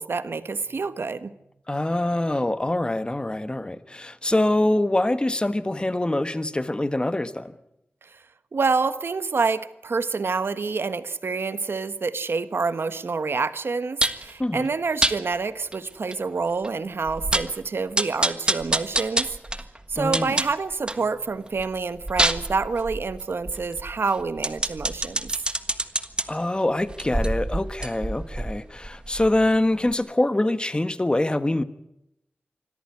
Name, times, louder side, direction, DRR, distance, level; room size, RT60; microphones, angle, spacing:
voice 1, 0.0-1.3 8.0-8.2 8.5-19.4 19.9-25.3, right 4 dB, 75° right, 1.3 m, -27 dB
voice 2, 1.7-7.5 14.4-14.7 20.0-20.4 26.3-31.6, left 1 dB, 25° left, 1.4 m, -24 dB
sound 1, 14.0-14.3 15.0-15.2 15.7-15.8 16.1-16.2 16.6-16.7 17.1-17.6 18.0-21.1 21.5-26.2 26.9-29.6 29.9-30.0, right 1 dB, 25° right, 1.5 m, -27 dB
25.0 x 13.5 x 9.7 m
wide cardioid pair, 65°, 4 cm